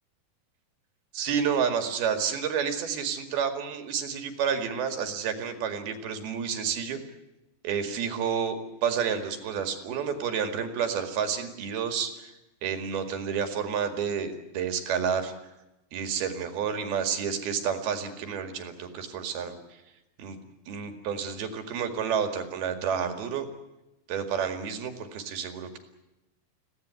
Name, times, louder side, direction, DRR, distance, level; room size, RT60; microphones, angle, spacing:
voice 1, 1.1-7.0 7.6-8.6 8.8-12.3 12.6-15.3 15.9-19.8 20.2-20.4 20.7-23.5 24.1-25.8, right 7 dB, 60° right, 7 dB, 3.7 m, -30 dB
25.5 x 17.0 x 9.6 m, 0.96 s
omnidirectional pair, 5.4 m